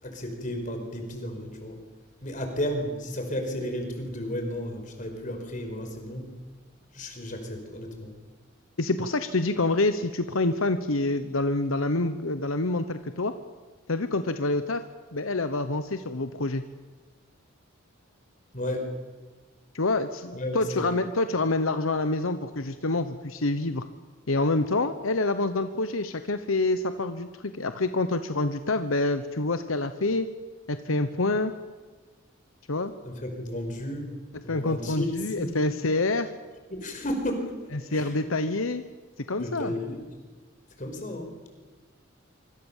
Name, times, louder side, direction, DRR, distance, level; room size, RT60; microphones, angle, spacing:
voice 1, 0.0-1.8 2.2-6.4 6.9-8.1 18.5-19.0 20.3-20.9 33.0-34.1 34.4-35.6 36.7-38.3 39.4-40.0 40.8-41.3, left 1 dB, 40° left, 4 dB, 5.2 m, -33 dB
voice 2, 8.8-13.3 13.9-14.8 15.1-16.6 19.7-23.8 24.3-30.3 30.7-31.5 32.7-32.9 34.5-36.3 37.9-38.8 39.3-39.7, left 2 dB, 80° left, 10 dB, 1.1 m, -27 dB
26.0 x 25.0 x 7.4 m, 1.3 s
head